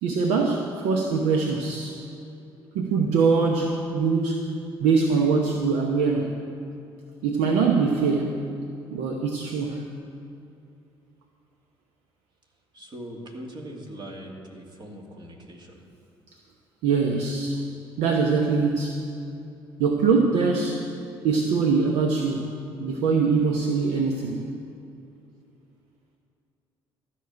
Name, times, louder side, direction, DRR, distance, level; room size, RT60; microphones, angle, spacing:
voice 1, 0.0-2.0 2.7-4.5 4.8-6.4 7.2-8.4 8.9-9.9 16.8-17.6 18.0-19.0 19.8-20.8 21.2-22.5 22.8-24.4, right 4 dB, 70° right, 2 dB, 0.9 m, -23 dB
voice 2, 12.7-15.9, right 1 dB, 40° right, 0 dB, 2.4 m, -41 dB
13.0 x 6.2 x 8.8 m, 2.7 s
hypercardioid pair, 50°, 12 cm